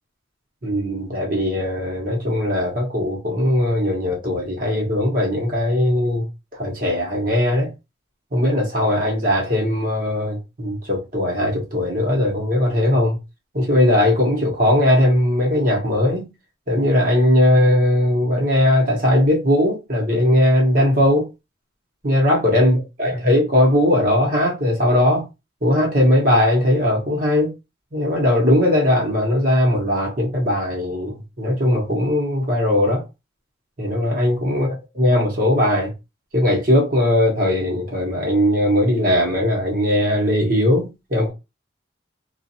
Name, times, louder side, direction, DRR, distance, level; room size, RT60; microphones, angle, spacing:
voice 1, 0.6-6.3 6.5-7.7 8.3-13.2 13.5-16.3 16.7-21.3 22.0-25.2 25.6-27.5 27.9-33.0 33.8-35.9 36.3-41.3, left 1 dB, 50° right, 1.1 m, -19 dB
2.5 x 2.4 x 2.7 m
head